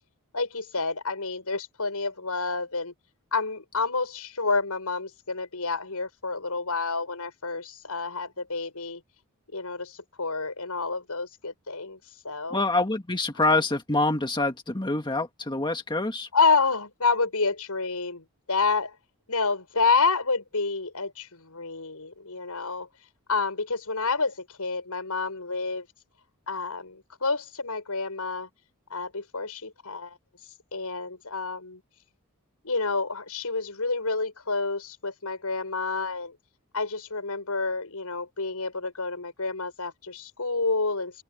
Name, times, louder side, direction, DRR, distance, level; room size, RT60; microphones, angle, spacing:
voice 1, 0.3-2.9 3.3-9.0 9.5-12.0 12.2-12.6 16.3-18.9 19.3-22.9 23.3-25.9 26.5-28.5 28.9-30.2 30.7-31.8 32.6-36.4 36.7-41.2, left 4 dB, 85° left, 6.0 m, -29 dB
voice 2, 12.5-16.3, left 2 dB, 20° left, 1.8 m, -26 dB
open air
head